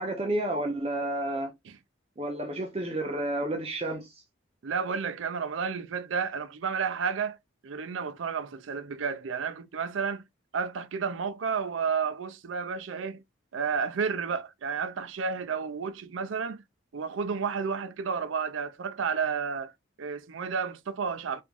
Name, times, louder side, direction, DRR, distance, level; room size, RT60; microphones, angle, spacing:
voice 1, 0.0-1.5 2.2-4.1, right 1 dB, 30° right, 0.5 m, -30 dB
voice 2, 4.6-7.4 7.6-10.2 10.5-13.2 13.5-16.6 16.9-19.7 20.0-21.4, right 6 dB, 85° right, 0.5 m, -31 dB
3.0 x 2.5 x 3.5 m
head